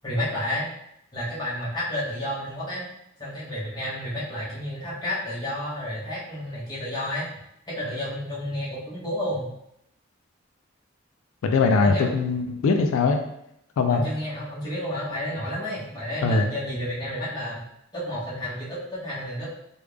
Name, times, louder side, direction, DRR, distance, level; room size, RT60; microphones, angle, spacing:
voice 1, 0.0-0.7 1.1-2.9 3.2-7.3 7.7-9.5 11.8-12.1 13.9-17.6 17.9-19.5, left 1 dB, 20° left, -8 dB, 1.1 m, -31 dB
voice 2, 11.4-13.2 13.8-14.1 16.2-16.5, left 4 dB, 85° left, 4 dB, 0.3 m, -21 dB
3.3 x 2.3 x 3.4 m, 0.78 s
head